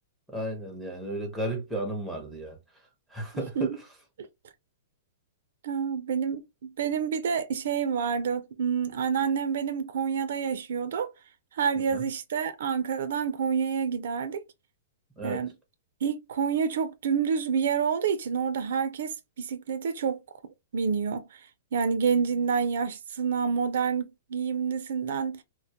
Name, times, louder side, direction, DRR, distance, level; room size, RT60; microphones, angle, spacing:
voice 1, 0.3-2.6 3.1-3.8 11.8-12.0 15.2-15.5, right 1 dB, ahead, 0.6 m, -34 dB
voice 2, 3.3-3.8 4.2-4.3 5.6-11.1 11.5-14.4 15.2-15.5 16.0-20.2 20.7-25.4, right 6 dB, 65° right, 0.4 m, -28 dB
2.2 x 2.1 x 2.7 m
hypercardioid pair, 160°, 0 cm